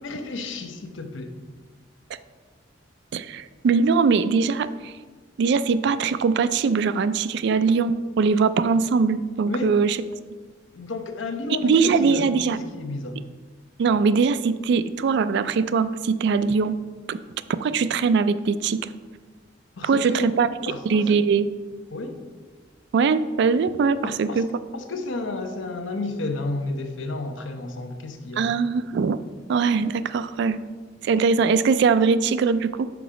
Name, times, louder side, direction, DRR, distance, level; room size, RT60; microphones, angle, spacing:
voice 1, 0.0-1.4 9.5-9.8 10.7-13.2 19.8-20.3 20.7-21.2 21.9-22.2 24.0-24.4 24.7-28.5, left 2 dB, 80° left, 6 dB, 0.7 m, -32 dB
voice 2, 3.1-4.9 5.4-10.0 11.6-12.6 13.8-16.8 17.1-17.2 17.6-18.8 19.8-20.5 20.9-21.5 22.9-24.5 28.4-29.2 29.5-30.6 31.0-32.9, right 5 dB, 60° right, 14 dB, 0.3 m, -21 dB
5.9 x 4.7 x 5.0 m, 1.4 s
head